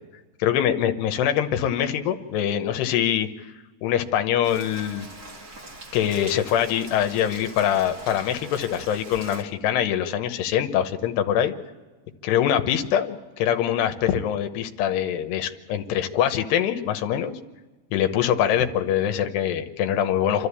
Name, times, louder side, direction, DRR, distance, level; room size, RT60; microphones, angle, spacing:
voice 1, 0.4-3.3 3.8-5.1 5.9-11.5 12.2-17.3 17.9-20.5, left 10 dB, 75° left, 7 dB, 3.0 m, -23 dB
Rain, 4.4-9.4, right 2 dB, 55° right, 1.0 m, -42 dB
28.0 x 13.0 x 8.4 m, 1.2 s
omnidirectional pair, 5.0 m